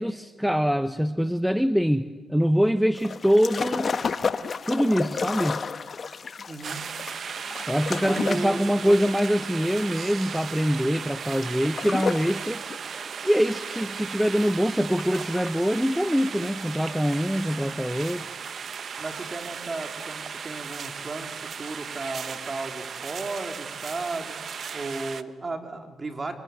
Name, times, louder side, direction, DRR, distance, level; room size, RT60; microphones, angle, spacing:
voice 1, 0.0-3.9 4.7-5.6 7.7-12.6 13.2-18.3, equal, ahead, 11 dB, 1.0 m, -24 dB
sound 1, 3.0-12.4 12.7-14.5 14.9-15.7 16.1-16.2, left 5 dB, 50° left, 1.4 m, -32 dB
voice 2, 6.5-6.8 8.0-8.9 18.2-18.3 19.0-21.3 21.6-24.4 24.7-26.3, right 3 dB, 35° right, 5 dB, 3.9 m, -34 dB
sound 2, 6.6-25.2, right 6 dB, 60° right, 1.2 m, -36 dB
26.0 x 25.0 x 9.4 m, 1.4 s
supercardioid pair, 65°, 0 cm